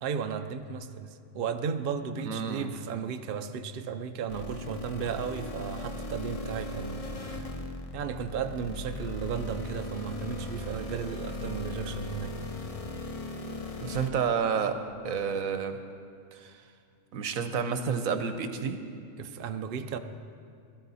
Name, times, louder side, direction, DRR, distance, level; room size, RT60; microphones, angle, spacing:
voice 1, 0.0-7.5 7.9-12.6 19.2-20.0, right 6 dB, 50° right, 7 dB, 0.8 m, -35 dB
voice 2, 2.2-2.7 13.8-14.8 15.0-15.8 16.3-16.5 17.1-18.8, right 6 dB, 85° right, 8 dB, 1.3 m, -30 dB
sound 1, 4.3-14.1, left 1 dB, 30° left, 0.8 m, -38 dB
21.0 x 13.0 x 4.1 m, 2.3 s
omnidirectional pair, 1.4 m